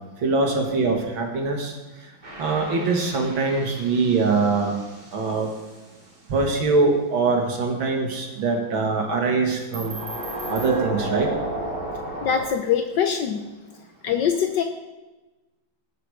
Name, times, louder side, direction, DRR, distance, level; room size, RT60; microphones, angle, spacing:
voice 1, 0.2-1.7 2.4-4.7 5.1-5.5 6.3-10.0 10.5-11.3, right 4 dB, 80° right, 2 dB, 2.7 m, -23 dB
sound 1, 2.2-5.8 9.7-12.4, right 1 dB, 20° right, 2.5 m, -33 dB
voice 2, 12.2-13.4 14.0-14.6, left 8 dB, 70° left, 6 dB, 1.3 m, -23 dB
19.5 x 6.7 x 5.0 m, 1.1 s
omnidirectional pair, 2.1 m